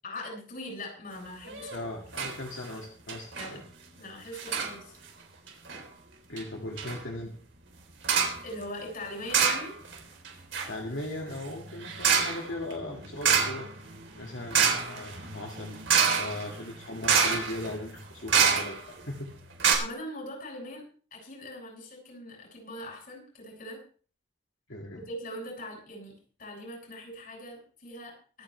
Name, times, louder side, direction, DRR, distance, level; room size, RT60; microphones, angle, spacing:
voice 1, 0.0-1.7 3.3-3.6 4.0-5.0 8.4-9.7 19.7-20.8 21.1-23.8 25.0-26.1 26.4-28.4, left 1 dB, 50° left, -1 dB, 7.7 m, -41 dB
sound 1, 1.5-1.8 2.1-2.4 2.6-2.7 3.1-3.5 4.3-4.7 5.5-5.8 6.4-6.5 6.8-7.0 8.0-8.4 9.3-10.0 10.2-19.0 19.3-19.4 19.6-19.7, right 6 dB, 70° right, 3.8 m, -27 dB
voice 2, 1.7-3.6 6.3-7.3 10.7-13.7 14.2-15.8 16.2-19.3 24.7-25.0, left 1 dB, 75° left, 0 dB, 2.2 m, -38 dB
24.0 x 9.6 x 3.4 m, 0.41 s
head